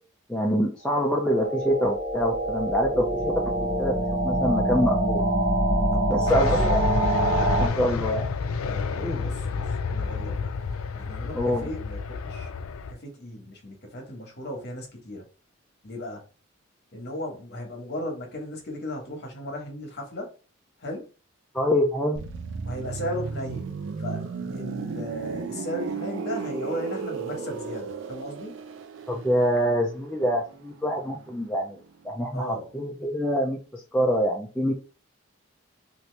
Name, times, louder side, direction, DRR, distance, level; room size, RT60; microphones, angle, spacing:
voice 1, 0.3-3.3 3.6-3.9 4.2-5.2 6.1-6.9 7.4-8.3 9.0-9.2 11.3-11.6 21.5-22.2 29.1-31.8 32.0-34.7, equal, 5° left, 0.4 m, -25 dB
sound 1, 1.0-7.7, right 1 dB, 30° right, 0.7 m, -25 dB
voice 2, 5.9-6.5 8.6-10.5 10.9-12.5 12.9-15.2 15.8-16.2 16.9-20.3 20.8-21.1 22.6-23.7 24.0-24.2 24.5-28.6 32.3-32.7, equal, 50° left, 1.1 m, -36 dB
sound 2, 6.3-12.9, left 5 dB, 90° left, 0.4 m, -30 dB
sound 3, 22.2-31.8 32.1-32.3, right 5 dB, 65° right, 0.4 m, -35 dB
2.8 x 2.6 x 3.1 m
head